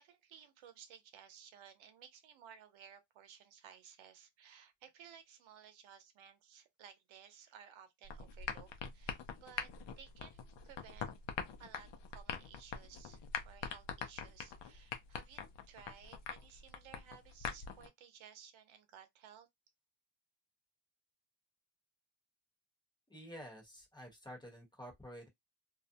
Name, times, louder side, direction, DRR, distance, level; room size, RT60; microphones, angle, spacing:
voice 1, 0.0-9.7 10.0-11.1 11.6-19.5, right 8 dB, 80° right, 0.8 m, -58 dB
sound 1, 8.0-17.9, left 7 dB, 65° left, 0.7 m, -44 dB
voice 2, 23.1-25.3, equal, 10° left, 1.0 m, -50 dB
2.5 x 2.1 x 2.7 m
cardioid pair, 140°, 47 cm